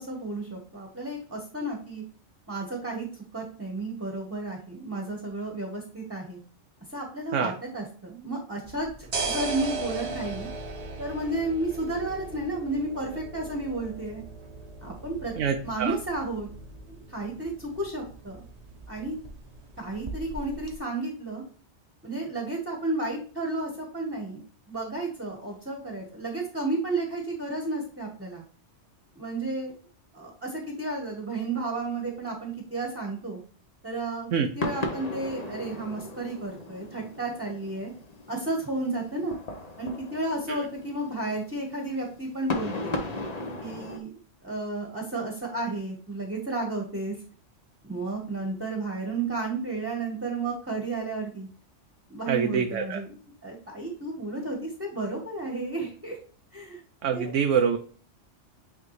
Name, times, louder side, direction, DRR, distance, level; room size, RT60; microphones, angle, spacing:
voice 1, 0.0-2.0 2.5-6.4 6.9-8.9 9.3-10.5 11.0-14.2 14.8-15.3 15.6-16.5 16.9-18.4 18.9-19.2 19.8-21.4 22.0-24.4 24.7-28.4 29.2-29.7 30.1-33.4 33.8-34.3 34.5-37.9 38.3-39.3 39.8-43.0 43.6-44.1 44.4-47.2 47.8-51.5 52.1-53.1 53.4-56.2 56.5-56.8 57.1-57.3, right 2 dB, 10° right, 1 dB, 1.1 m, -32 dB
sound 1, 8.6-20.8, right 3 dB, 35° right, 0.8 m, -38 dB
voice 2, 15.4-15.9 34.3-34.5 40.5-40.6 52.3-53.0 57.0-57.8, right 7 dB, 80° right, 5 dB, 1.0 m, -25 dB
sound 2, 34.6-44.0, left 2 dB, 35° left, 0.9 m, -37 dB
8.8 x 3.4 x 3.2 m, 0.43 s
omnidirectional pair, 1.2 m